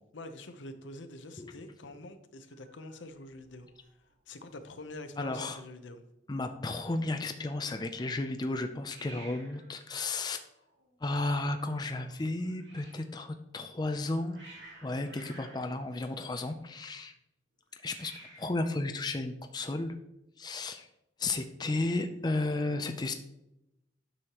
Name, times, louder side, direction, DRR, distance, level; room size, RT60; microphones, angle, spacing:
voice 1, 0.1-3.7 4.3-6.0 16.0-16.3, left 2 dB, 90° left, 8 dB, 0.8 m, -46 dB
Hiss, 2.5-3.9 4.1-4.6 4.8-4.9 5.1-5.8 8.8-13.1 13.9-16.8 17.7-18.7, right 1 dB, 75° right, 2.0 m, -55 dB
voice 2, 5.2-5.6 6.3-10.4 11.0-14.4 14.8-17.1 17.8-18.1 18.4-20.0 20.4-20.9 21.2-23.1, left 2 dB, 20° left, 7 dB, 0.4 m, -33 dB
9.6 x 6.3 x 3.0 m, 0.89 s
head